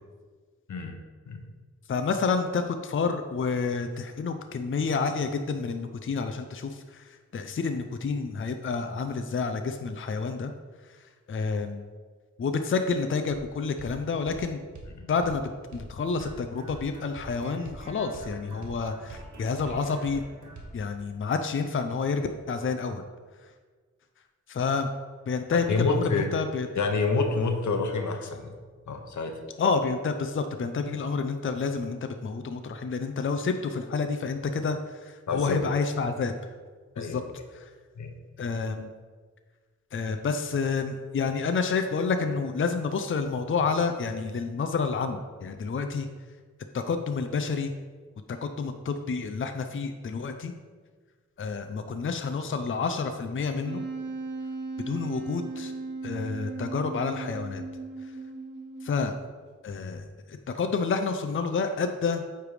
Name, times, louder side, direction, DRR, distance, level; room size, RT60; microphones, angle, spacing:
voice 1, 1.9-10.5 11.3-11.8 12.4-14.6 15.1-15.4 15.7-20.2 20.7-23.1 24.5-24.9 25.3-26.7 29.6-36.3 37.0-37.2 37.5-37.7 38.4-38.9 39.9-46.1 46.7-47.7 48.3-50.5 51.4-53.9 54.9-55.7 56.0-57.6 58.8-59.1 59.6-62.2, left 4 dB, 45° left, 7 dB, 0.5 m, -29 dB
sound 1, 13.3-13.5 13.8-14.0 14.3-14.4 14.7-14.9 15.2-15.4 15.7-15.9 16.2-20.8, right 2 dB, 80° right, 1.2 m, -44 dB
voice 2, 25.7-26.3 26.8-28.5 28.9-29.3 35.3-35.6 37.0-37.2 38.0-38.1, left 3 dB, 80° left, 5 dB, 0.9 m, -27 dB
Wind instrument woodwind instrument, 53.6-59.3, right 3 dB, 40° right, 1.2 m, -37 dB
8.7 x 3.4 x 4.9 m, 1.5 s
cardioid pair, 60°, 29 cm